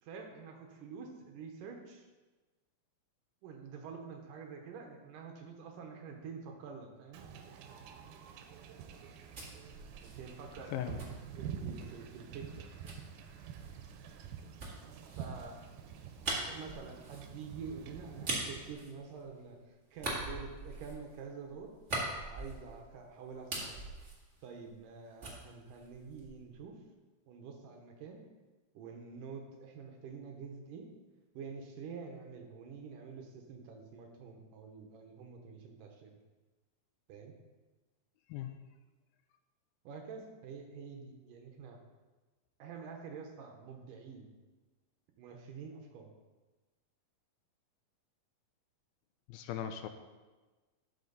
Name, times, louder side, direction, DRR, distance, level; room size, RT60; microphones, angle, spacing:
voice 1, 0.0-2.1 3.4-7.2 10.0-10.7 11.4-12.7 15.1-15.6 16.5-21.7 22.2-23.8 24.4-26.8 27.3-28.2 28.7-30.9 31.3-36.1 37.1-37.4 39.8-41.8 42.6-44.3 45.2-46.1, right 5 dB, 75° right, 2 dB, 2.4 m, -47 dB
Wind / Ocean / Boat Water vehicle, 7.1-18.7, right 7 dB, 90° right, 2.5 m, -47 dB
sound 1, 9.0-12.0 12.8-19.5 19.9-22.9 23.2-24.9 25.2-26.5, right 2 dB, 35° right, 1.1 m, -42 dB
voice 2, 49.3-49.9, left 10 dB, 90° left, 8 dB, 2.4 m, -38 dB
12.0 x 5.8 x 4.0 m, 1.2 s
omnidirectional pair, 4.2 m